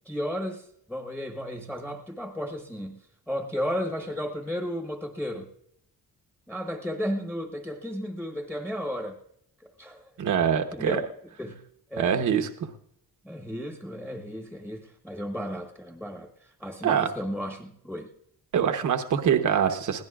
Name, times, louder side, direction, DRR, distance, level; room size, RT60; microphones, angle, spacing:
voice 1, 0.0-5.5 6.5-9.2 9.8-10.1 10.7-11.1 11.4-11.6 11.9-12.2 13.2-18.1, equal, 5° left, 2 dB, 1.1 m, -34 dB
voice 2, 10.2-11.0 12.0-12.5 16.8-17.1 18.5-20.0, right 8 dB, 55° right, 6 dB, 1.0 m, -24 dB
21.5 x 17.0 x 2.4 m, 0.73 s
wide cardioid pair, 175°, 35 cm